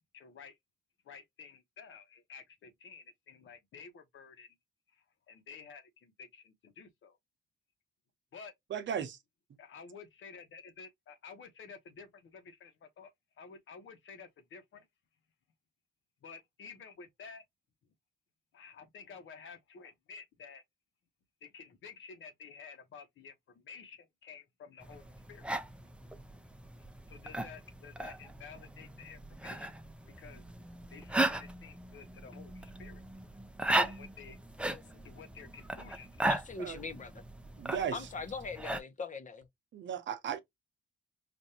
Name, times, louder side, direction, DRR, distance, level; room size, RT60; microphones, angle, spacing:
voice 1, 0.1-0.6 1.0-4.6 4.9-7.2 8.3-8.5 9.6-13.1 13.4-14.9 16.2-17.4 18.5-20.6 21.4-25.5 27.1-29.8 30.1-30.4 30.9-33.0 33.8-34.4 34.8-36.3, left 5 dB, 70° left, 1.1 m, -52 dB
voice 2, 8.7-9.2 36.6-36.8 37.6-38.1 39.7-40.4, right 8 dB, 65° right, 0.8 m, -36 dB
sound 1, 24.8-38.8, right 2 dB, 5° right, 0.5 m, -37 dB
voice 3, 34.7-35.0 36.2-37.2 37.9-39.5, left 4 dB, 40° left, 0.8 m, -41 dB
5.1 x 2.6 x 2.8 m
cardioid pair, 110°, 21 cm